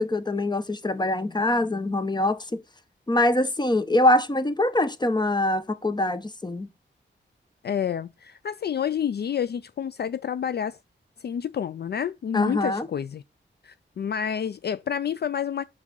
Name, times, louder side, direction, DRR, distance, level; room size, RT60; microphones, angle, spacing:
voice 1, 0.0-2.6 3.1-6.7 12.3-12.9, left 1 dB, 20° left, 0.9 m, -24 dB
voice 2, 7.6-10.8 11.2-13.2 13.6-15.6, left 8 dB, 55° left, 0.4 m, -29 dB
6.3 x 4.9 x 5.4 m
cardioid pair, 55°, 20 cm